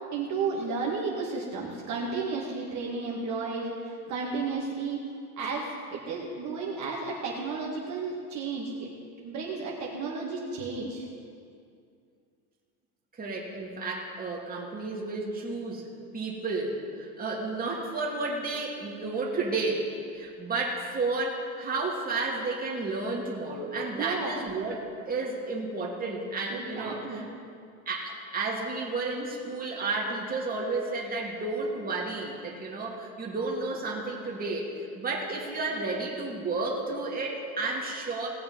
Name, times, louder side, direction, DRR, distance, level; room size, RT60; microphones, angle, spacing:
voice 1, 0.1-5.0 5.4-8.9 9.2-11.1 24.0-24.3 26.5-27.3, right 4 dB, 40° right, -4 dB, 2.2 m, -33 dB
voice 2, 13.2-15.9 16.1-19.9 20.1-24.8 25.0-27.2 27.9-38.3, right 3 dB, 20° right, -3 dB, 2.8 m, -32 dB
19.0 x 6.8 x 5.6 m, 2.3 s
hypercardioid pair, 105°, 45 cm